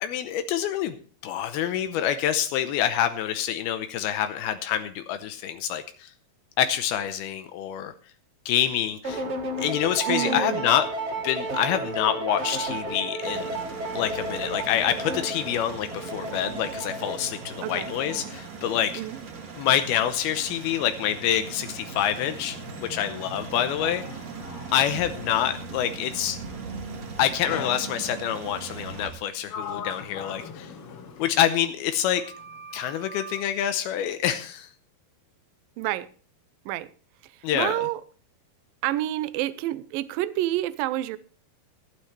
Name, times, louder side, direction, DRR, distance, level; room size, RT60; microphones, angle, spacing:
voice 1, 0.0-1.0 1.2-6.1 6.6-7.9 8.5-9.3 9.6-10.8 11.2-13.5 13.9-18.9 19.6-22.6 22.9-24.0 24.7-26.4 27.2-30.7 31.2-32.2 32.7-34.7 37.4-37.8, left 10 dB, 85° left, 2.7 m, -26 dB
sound 1, 9.0-18.4, right 1 dB, 60° right, 0.6 m, -33 dB
voice 2, 10.1-10.7 17.6-17.9 19.0-19.2 35.8-36.1 36.7-36.9 37.5-38.0 38.8-41.2, right 15 dB, 75° right, 2.2 m, -28 dB
sound 2, 13.2-29.1, right 4 dB, 45° right, 3.1 m, -39 dB
Sliding door, 21.7-25.7 27.5-28.4 29.1-31.9 32.2-33.5, left 4 dB, 65° left, 1.4 m, -41 dB
17.0 x 12.0 x 3.2 m
omnidirectional pair, 4.5 m